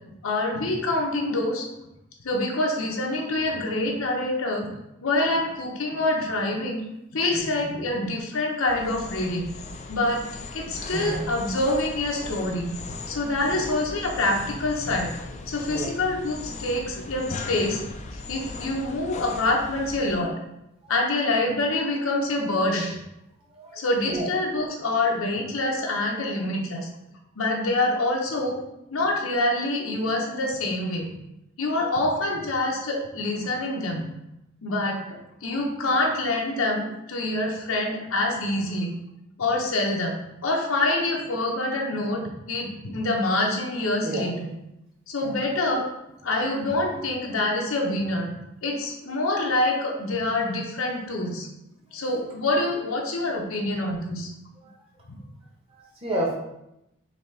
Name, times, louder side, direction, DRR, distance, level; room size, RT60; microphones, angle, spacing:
voice 1, 0.2-1.7 2.2-4.7 5.0-6.8 7.1-9.5 9.9-10.3 10.5-15.1 15.5-17.8 18.1-20.3 20.9-23.0 23.7-26.9 27.4-28.6 28.9-31.1 31.6-34.1 34.6-38.9 39.4-40.2 40.4-44.5 45.1-45.9 46.2-48.3 48.6-51.5 51.9-54.3, left 2 dB, 85° left, 0 dB, 0.9 m, -26 dB
voice 2, 7.3-7.7 10.9-11.2 15.7-15.9 20.8-20.9 23.5-24.3 44.0-44.2 45.2-45.3 54.6-54.7 55.7-56.3, right 1 dB, 30° right, -3 dB, 1.1 m, -31 dB
sound 1, 8.7-20.1, left 3 dB, 35° left, 0.3 m, -38 dB
4.1 x 3.3 x 3.3 m, 0.87 s
head